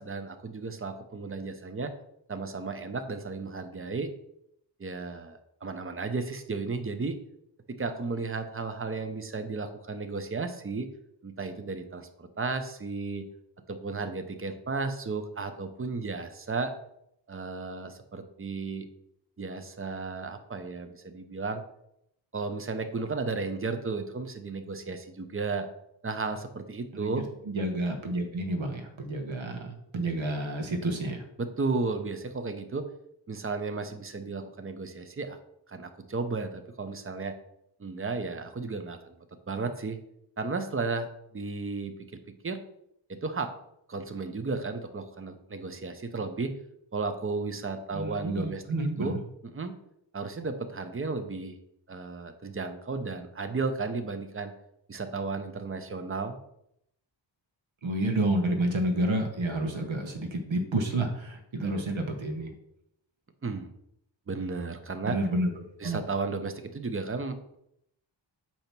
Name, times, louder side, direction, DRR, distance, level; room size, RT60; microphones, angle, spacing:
voice 1, 0.0-1.9 2.3-4.1 4.8-7.2 7.7-10.9 11.2-13.3 13.7-16.7 17.3-18.9 19.4-21.6 22.3-25.7 26.0-27.2 31.4-32.9 33.3-35.4 35.7-37.4 37.8-39.2 39.5-40.0 40.4-42.6 43.1-43.5 43.9-46.5 46.9-48.6 49.0-49.2 49.5-49.8 50.1-51.6 51.9-54.5 54.9-56.4 63.4-63.7 64.3-65.2 65.8-67.6, right 4 dB, 30° right, 8 dB, 0.7 m, -34 dB
voice 2, 27.5-31.2 47.9-49.2 57.8-62.5 65.0-65.5 65.8-66.0, right 1 dB, 80° right, 4 dB, 1.2 m, -29 dB
8.6 x 2.9 x 5.9 m, 0.77 s
wide cardioid pair, 140°, 46 cm